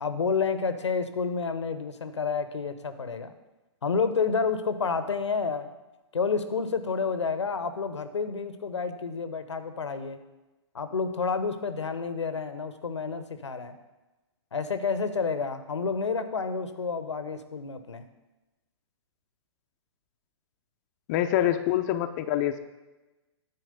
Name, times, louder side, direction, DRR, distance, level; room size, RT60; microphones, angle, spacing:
voice 1, 0.0-3.3 3.8-5.7 6.1-10.2 10.7-13.8 14.5-18.0, left 5 dB, 80° left, 10 dB, 0.9 m, -29 dB
voice 2, 21.1-22.6, left 12 dB, 40° left, 7 dB, 0.6 m, -25 dB
9.5 x 4.5 x 6.7 m, 1.1 s
figure-of-eight pair, 120°, 15 cm